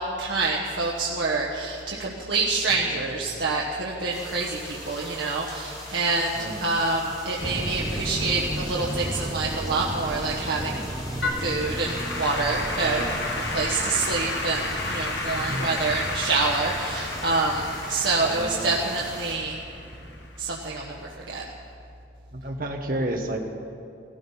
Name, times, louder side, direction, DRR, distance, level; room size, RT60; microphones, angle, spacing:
voice 1, 0.0-10.9 11.4-13.0 13.5-19.6 20.4-21.0 21.3-21.4, right 3 dB, 80° right, -3 dB, 1.3 m, -27 dB
sound 1, 4.1-19.4, left 1 dB, 20° left, 2.6 m, -41 dB
sound 2, 7.4-20.3, right 1 dB, 20° right, 0.8 m, -35 dB
Applause / Keyboard (musical), 11.2-20.6, left 2 dB, 70° left, 1.8 m, -32 dB
voice 2, 12.8-13.1 15.3-15.8 18.2-18.7 22.3-23.4, right 1 dB, 50° right, 3 dB, 1.4 m, -31 dB
16.5 x 14.0 x 5.6 m, 2.5 s
head